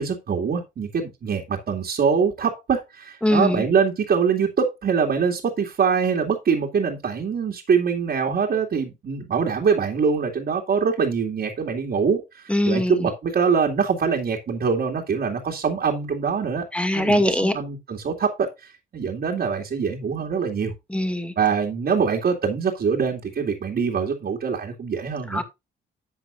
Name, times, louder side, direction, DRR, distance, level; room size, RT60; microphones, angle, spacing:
voice 1, 0.0-16.7 16.9-20.7 21.4-25.4, right 6 dB, 50° right, 2.5 m, -24 dB
voice 2, 3.2-3.6 12.5-13.1 16.7-17.5 20.9-21.3 25.3-25.4, left 1 dB, 5° left, 2.3 m, -22 dB
12.0 x 7.5 x 2.6 m
cardioid pair, 90°, 20 cm